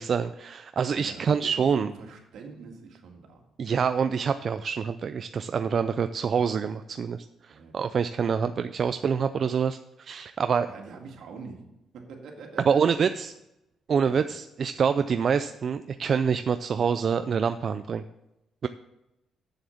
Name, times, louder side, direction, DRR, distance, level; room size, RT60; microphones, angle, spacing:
voice 1, 0.0-1.9 3.6-10.7 12.7-13.3 13.9-18.0 18.6-18.7, right 6 dB, 50° right, 10 dB, 0.4 m, -26 dB
voice 2, 0.9-3.4 7.5-8.0 10.7-11.6 11.9-13.2 14.1-14.3, right 4 dB, 75° right, 2 dB, 1.9 m, -44 dB
7.2 x 7.1 x 7.0 m, 0.91 s
cardioid pair, 90°, 0 cm